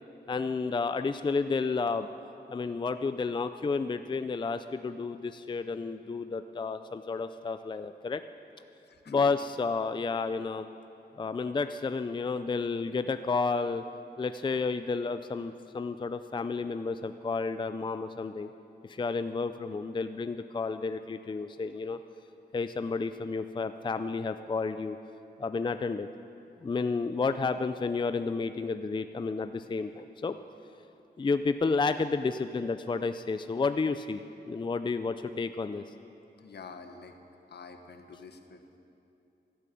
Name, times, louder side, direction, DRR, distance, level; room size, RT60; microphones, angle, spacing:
voice 1, 0.3-2.1 2.5-8.2 9.1-10.7 11.1-13.8 14.2-18.5 18.8-22.0 22.5-25.0 25.4-26.1 26.6-30.4 31.2-35.9, left 4 dB, 25° left, 10 dB, 0.4 m, -31 dB
voice 2, 8.8-9.3 36.4-37.1 37.5-38.8, left 4 dB, 70° left, 6 dB, 1.3 m, -47 dB
16.5 x 12.0 x 6.9 m, 2.8 s
wide cardioid pair, 105°, 18 cm